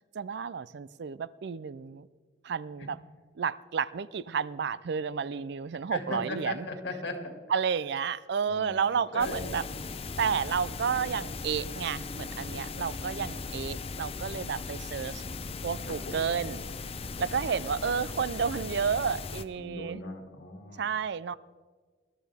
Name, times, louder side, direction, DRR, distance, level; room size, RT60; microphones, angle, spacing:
voice 1, 0.1-2.1 2.4-3.0 3.4-6.7 7.5-9.6 10.2-15.2 15.6-16.6 17.2-20.0 20.8-21.3, right 6 dB, 60° right, 18 dB, 0.4 m, -31 dB
voice 2, 5.9-7.3 8.5-9.6 14.9-15.5 15.9-16.3 19.6-20.9, left 2 dB, 60° left, 3 dB, 2.4 m, -39 dB
sound 1, 9.2-19.4, left 4 dB, 30° left, 0.5 m, -38 dB
21.0 x 12.5 x 3.5 m, 1.5 s
head